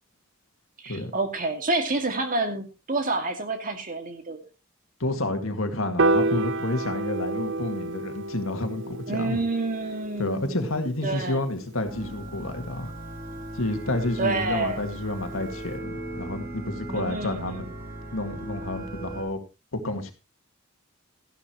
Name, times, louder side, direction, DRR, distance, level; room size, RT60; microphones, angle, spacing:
voice 1, 0.8-4.4 9.1-11.4 14.2-14.8 16.9-17.7, right 2 dB, 45° right, 6 dB, 2.2 m, -29 dB
voice 2, 5.0-9.4 10.2-12.9 13.5-17.7 18.1-19.4 19.7-20.1, left 2 dB, 80° left, 7 dB, 2.0 m, -30 dB
Piano, 6.0-12.3, right 2 dB, 65° right, 0.6 m, -29 dB
sound 1, 11.8-19.2, right 1 dB, 15° right, 3.7 m, -38 dB
14.5 x 11.5 x 3.0 m, 0.28 s
head